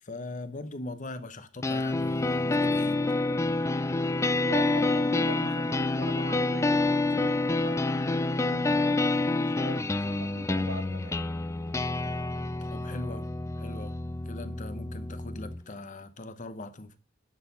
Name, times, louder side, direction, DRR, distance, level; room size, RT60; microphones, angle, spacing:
voice 1, 0.0-3.0 12.6-13.3 13.6-13.9 14.2-17.0, left 2 dB, 40° left, 0.9 m, -40 dB
sound 1, 1.6-15.6, left 2 dB, 15° left, 0.4 m, -28 dB
voice 2, 4.4-11.2, right 2 dB, 60° right, 1.7 m, -42 dB
11.0 x 4.5 x 6.7 m
head